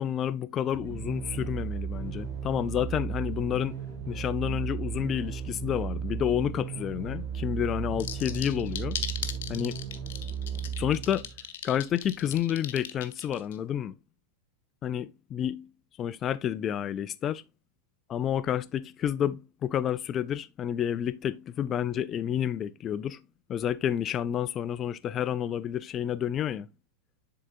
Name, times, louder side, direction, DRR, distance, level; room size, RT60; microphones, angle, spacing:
voice 1, 0.0-3.7 4.1-9.0 9.5-9.8 10.8-11.2 11.6-13.9 14.8-15.7 16.0-17.4 18.1-23.2 23.5-26.7, left 10 dB, 30° left, 0.4 m, -30 dB
sound 1, 0.7-11.4, right 7 dB, 50° right, 2.2 m, -35 dB
sound 2, 8.0-13.6, left 11 dB, 55° left, 0.8 m, -37 dB
10.5 x 3.9 x 2.4 m
figure-of-eight pair, 90°, 0 cm